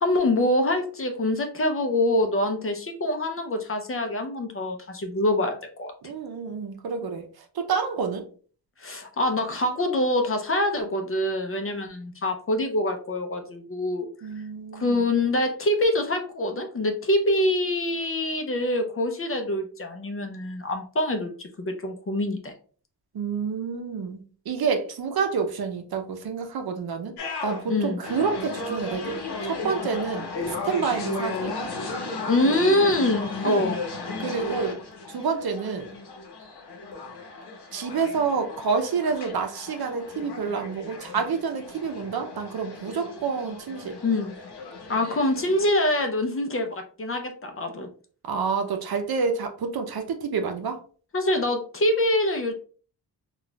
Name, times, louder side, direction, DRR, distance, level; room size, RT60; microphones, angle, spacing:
voice 1, 0.0-6.1 8.8-14.1 14.7-21.3 21.6-22.5 27.7-28.0 32.2-33.8 44.0-44.3 44.9-47.9 51.1-52.5, left 1 dB, 35° left, 5 dB, 0.6 m, -25 dB
voice 2, 6.0-7.3 7.5-8.3 14.2-15.0 23.1-27.1 27.4-30.3 30.6-31.5 33.4-33.7 34.2-34.8 35.1-35.9 37.7-44.0 48.3-50.8, right 5 dB, 65° right, 5 dB, 0.7 m, -28 dB
sound 1, 27.2-45.7, left 2 dB, 75° left, 0.9 m, -35 dB
3.9 x 2.4 x 2.3 m, 0.42 s
cardioid pair, 80°, 40 cm